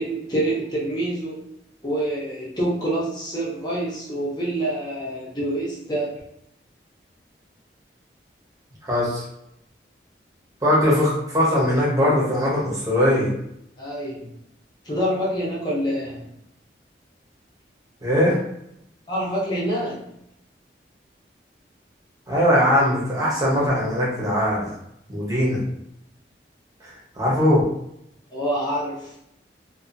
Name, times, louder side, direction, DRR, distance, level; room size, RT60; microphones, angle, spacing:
voice 1, 0.0-1.4 1.8-6.2 13.8-14.3 14.8-16.3 19.1-20.0 28.3-29.1, right 1 dB, 25° left, -7 dB, 0.7 m, -26 dB
voice 2, 8.8-9.2 10.6-13.3 18.0-18.4 22.3-24.7 25.1-25.6 27.1-27.7, equal, 20° right, -6 dB, 0.9 m, -20 dB
2.6 x 2.5 x 2.5 m, 0.77 s
head